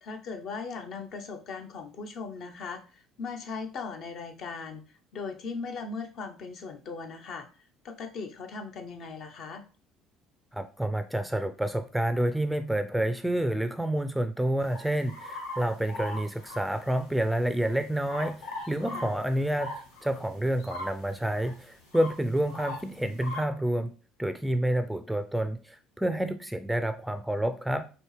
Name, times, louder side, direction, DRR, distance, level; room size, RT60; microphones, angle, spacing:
voice 1, 0.0-7.5 7.8-9.6 18.9-19.2, left 4 dB, 60° left, 6 dB, 0.8 m, -39 dB
voice 2, 10.5-23.9 24.2-27.8, right 1 dB, 5° right, 10 dB, 0.4 m, -29 dB
sound 1, 14.6-17.4 17.6-23.4, left 1 dB, 90° left, 1.2 m, -40 dB
4.3 x 2.8 x 3.2 m, 0.36 s
hypercardioid pair, 70°, 0 cm